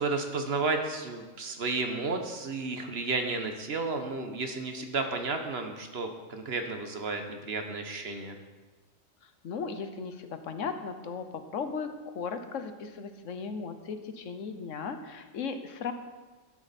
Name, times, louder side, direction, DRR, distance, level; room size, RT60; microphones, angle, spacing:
voice 1, 0.0-8.4, right 3 dB, 50° right, 5 dB, 1.2 m, -32 dB
voice 2, 9.2-15.9, left 5 dB, 70° left, 8 dB, 1.2 m, -37 dB
12.5 x 10.0 x 4.2 m, 1.3 s
omnidirectional pair, 1.4 m